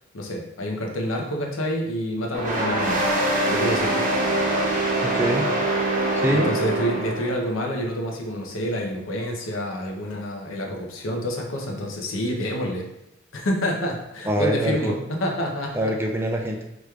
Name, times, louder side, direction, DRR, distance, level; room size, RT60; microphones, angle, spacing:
voice 1, 0.1-3.0 3.5-4.1 6.3-12.9 13.3-15.9, equal, 75° left, 1 dB, 0.7 m, -28 dB
sound 1, 2.3-7.4, right 1 dB, 40° right, 0.9 m, -23 dB
voice 2, 5.0-5.5 6.2-6.5 14.3-14.8 15.7-16.6, equal, 10° right, 2 dB, 0.3 m, -24 dB
4.9 x 3.1 x 2.3 m, 0.86 s
head